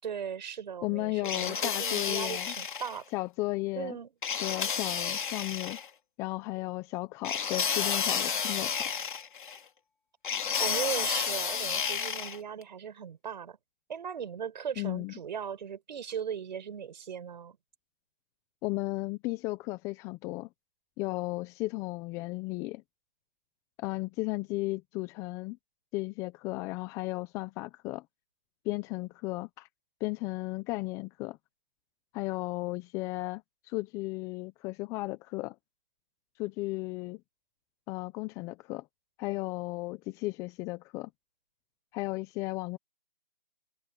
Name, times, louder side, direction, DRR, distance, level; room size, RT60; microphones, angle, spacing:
voice 1, 0.0-3.1 3.7-4.1 10.6-13.6 13.9-17.6, right 8 dB, 50° right, 4.7 m, -38 dB
voice 2, 0.8-2.5 3.1-4.0 4.4-5.8 6.2-8.9 14.8-15.1 18.6-20.5 21.0-22.8 23.8-25.6 25.9-28.0 28.6-29.7 30.0-31.4 32.1-35.6 36.4-37.2 37.9-38.9 39.2-41.1 41.9-42.8, left 21 dB, 10° left, 0.8 m, -35 dB
sound 1, 1.2-3.0 4.2-5.9 7.2-9.6 10.2-12.4, left 7 dB, 55° left, 3.1 m, -31 dB
hypercardioid pair, 155°, 29 cm